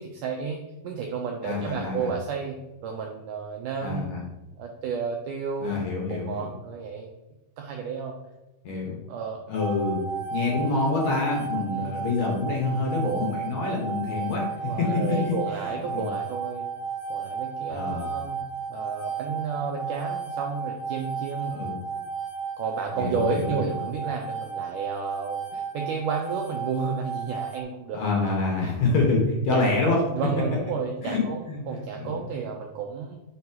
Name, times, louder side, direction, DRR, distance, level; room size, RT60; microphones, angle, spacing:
voice 1, 0.0-4.1 4.6-5.7 6.1-7.1 7.6-8.2 9.1-9.4 11.7-11.9 13.0-13.3 14.6-16.6 17.1-18.4 18.7-21.5 22.6-28.0 29.5-29.7 30.1-33.2, right 6 dB, 80° right, 1 dB, 1.8 m, -32 dB
voice 2, 1.4-2.1 3.8-4.2 5.6-6.5 8.6-9.0 9.5-10.0 10.3-15.3 15.6-16.1 17.7-18.1 21.5-21.8 22.9-23.8 27.9-30.0 31.0-32.3, left 3 dB, 60° left, -1 dB, 2.2 m, -27 dB
sound 1, 9.6-27.6, right 5 dB, 75° left, 2.5 m, -34 dB
9.4 x 5.8 x 2.9 m, 1.0 s
omnidirectional pair, 4.4 m